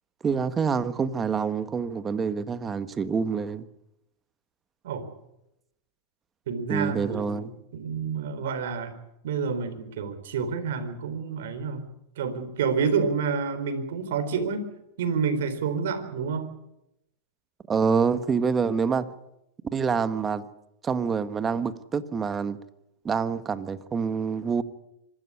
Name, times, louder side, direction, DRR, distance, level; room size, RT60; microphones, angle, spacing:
voice 1, 0.2-3.7 6.7-7.5 17.7-19.1 19.7-20.5 20.8-22.6 23.0-24.6, right 5 dB, 20° right, 1.3 m, -26 dB
voice 2, 6.5-7.5 7.7-8.9 9.2-11.8 12.2-14.7 15.0-16.5, right 5 dB, 75° right, 4.1 m, -28 dB
25.5 x 12.5 x 9.9 m
supercardioid pair, 130°, 0 cm